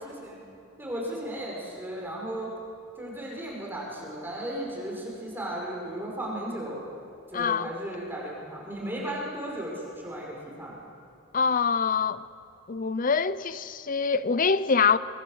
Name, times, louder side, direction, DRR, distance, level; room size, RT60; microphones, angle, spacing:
voice 1, 0.0-0.4 0.8-2.5 3.0-6.8 7.3-10.8, right 1 dB, 10° right, 5.4 m, -35 dB
voice 2, 7.3-7.7 11.3-12.2 12.7-15.0, left 5 dB, 40° left, 0.7 m, -24 dB
24.5 x 23.5 x 6.5 m
head